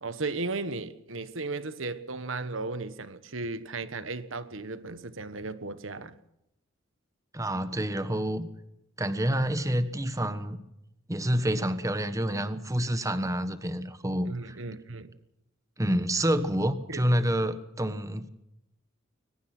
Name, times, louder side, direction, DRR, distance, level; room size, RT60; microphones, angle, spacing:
voice 1, 0.0-6.1 14.2-15.1 16.9-17.0, right 3 dB, 70° right, 1.4 m, -35 dB
voice 2, 7.3-8.5 9.0-10.6 11.1-14.6 15.8-18.3, equal, 15° right, 1.3 m, -28 dB
22.0 x 20.5 x 6.2 m
head